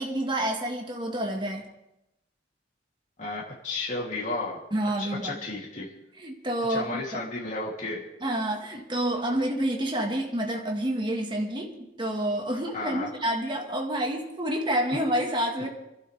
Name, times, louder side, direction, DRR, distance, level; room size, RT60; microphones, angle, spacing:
voice 1, 0.0-1.7 4.7-5.4 6.2-7.2 8.2-15.7, right 1 dB, 25° right, 1 dB, 1.7 m, -28 dB
voice 2, 3.2-4.6 5.0-5.9 6.7-8.0 9.3-9.4 12.7-13.1, left 2 dB, 45° left, -4 dB, 3.1 m, -33 dB
29.0 x 12.0 x 3.5 m, 0.90 s
head